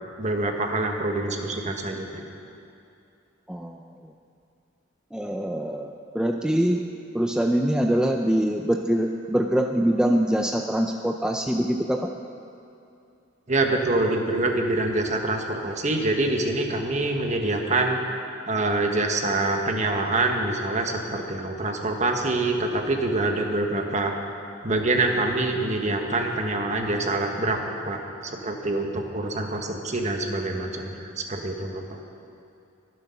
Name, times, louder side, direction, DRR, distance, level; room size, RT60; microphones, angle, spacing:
voice 1, 0.2-2.2 13.5-18.0 18.5-24.1 24.6-27.6 27.8-32.0, right 2 dB, 40° right, 3 dB, 1.4 m, -25 dB
voice 2, 3.5-3.8 5.1-6.8 7.1-12.1, right 1 dB, 5° right, 2 dB, 0.4 m, -24 dB
23.0 x 7.8 x 5.8 m, 2.6 s
head